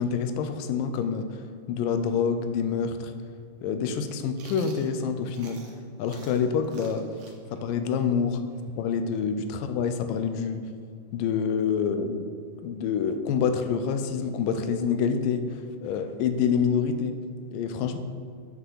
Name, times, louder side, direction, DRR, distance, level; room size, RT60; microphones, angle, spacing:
voice 1, 0.0-3.1 3.6-5.6 6.0-7.1 7.5-8.4 8.8-10.7 11.1-12.3 12.6-17.2 17.5-18.0, left 6 dB, 85° left, 8 dB, 2.3 m, -27 dB
Chewing mastication, 4.4-5.8 6.1-9.7, right 4 dB, 80° right, 1.2 m, -50 dB
8.1 x 6.0 x 5.6 m, 2.1 s
omnidirectional pair, 4.0 m